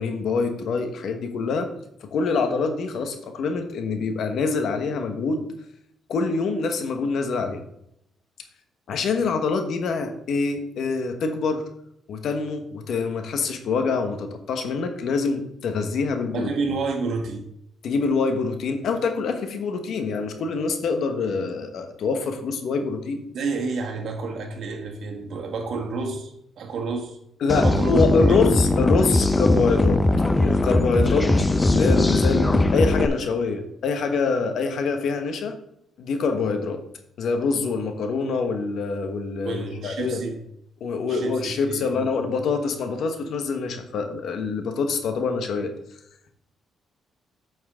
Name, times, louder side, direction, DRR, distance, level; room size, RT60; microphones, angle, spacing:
voice 1, 0.0-1.7 2.0-5.5 6.1-7.6 8.9-11.6 12.1-16.5 17.8-23.2 27.4-30.1 30.4-35.6 36.0-36.8 37.2-40.2 40.8-45.7, left 4 dB, 70° left, 6 dB, 1.3 m, -25 dB
voice 2, 16.3-17.5 23.3-27.2 27.5-28.5 39.4-40.4 41.1-42.1, right 4 dB, 65° right, 2 dB, 1.8 m, -30 dB
sound 1, 27.5-33.1, left 2 dB, 15° left, 0.6 m, -20 dB
9.0 x 6.2 x 3.7 m, 0.76 s
cardioid pair, 90°, 0 cm